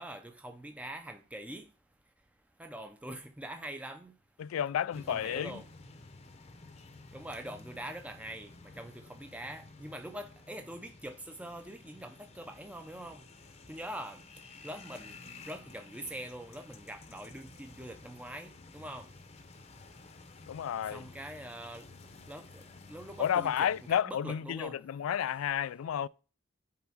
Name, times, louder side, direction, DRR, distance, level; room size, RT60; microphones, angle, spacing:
voice 1, 0.0-1.7 2.6-4.1 5.1-5.7 7.1-13.3 13.7-14.2 14.6-15.2 15.5-19.1 20.9-21.8 22.3-24.8, right 1 dB, 5° right, 0.5 m, -44 dB
voice 2, 4.4-5.6 20.5-21.1 23.2-26.1, left 9 dB, 90° left, 0.3 m, -31 dB
sound 1, 4.9-24.0, left 3 dB, 30° left, 0.7 m, -53 dB
5.7 x 5.0 x 6.0 m
head